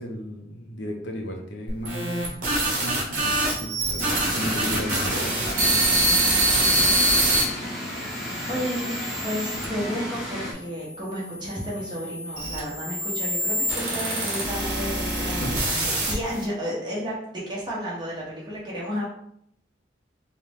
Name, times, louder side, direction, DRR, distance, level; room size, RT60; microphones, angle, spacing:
voice 1, 0.0-4.0 4.3-5.9 15.4-15.6, equal, 85° left, 2 dB, 0.8 m, -34 dB
sound 1, 1.7-7.4 8.1-9.6 10.4-16.4, right 1 dB, 45° right, 1.4 m, -25 dB
sound 2, 4.0-10.5, equal, ahead, 1.0 m, -33 dB
voice 2, 8.5-19.0, equal, 25° right, -6 dB, 1.3 m, -32 dB
4.7 x 2.3 x 3.6 m, 0.72 s
head